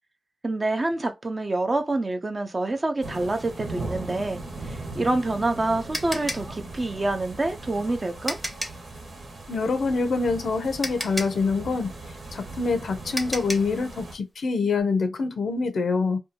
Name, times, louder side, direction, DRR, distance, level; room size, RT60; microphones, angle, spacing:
voice 1, 0.4-8.4, right 2 dB, 30° right, 0.6 m, -27 dB
sound 1, 3.0-14.1, right 2 dB, 65° right, 1.0 m, -39 dB
sound 2, 5.9-8.9 10.3-10.4 10.8-13.8, equal, 5° right, 0.8 m, -34 dB
voice 2, 9.5-11.9 12.3-16.2, left 4 dB, 80° left, 0.5 m, -25 dB
2.7 x 2.3 x 2.6 m
wide cardioid pair, 100°, 0 cm